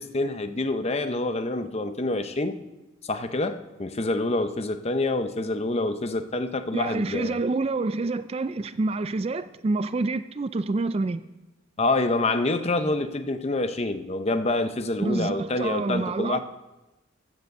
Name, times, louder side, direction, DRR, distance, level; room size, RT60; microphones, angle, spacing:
voice 1, 0.0-2.6 3.0-7.4 11.8-16.4, left 2 dB, 30° left, 10 dB, 0.7 m, -27 dB
voice 2, 6.7-11.2 15.0-16.4, right 3 dB, 30° right, 13 dB, 0.3 m, -27 dB
15.0 x 6.7 x 6.6 m, 1.0 s
head